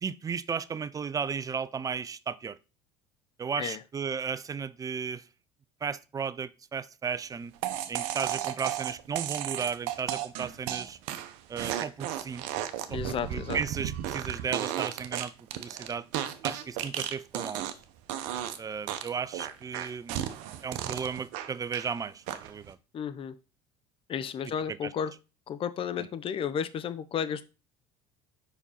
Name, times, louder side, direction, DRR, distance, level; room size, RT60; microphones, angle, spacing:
voice 1, 0.0-2.6 3.4-5.3 5.8-7.5 7.9-11.0 11.5-12.4 12.9-16.1 16.4-17.6 18.6-20.2 20.6-22.8 24.8-24.9, right 6 dB, 25° right, 0.5 m, -35 dB
sound 1, 7.6-17.8 18.1-18.6 18.9-21.9 22.3-22.7, right 11 dB, 65° right, 0.8 m, -34 dB
voice 2, 12.9-13.6 22.9-23.4 24.1-25.1 25.5-27.4, left 8 dB, 40° left, 0.7 m, -33 dB
5.2 x 5.0 x 4.2 m
hypercardioid pair, 75°, 14 cm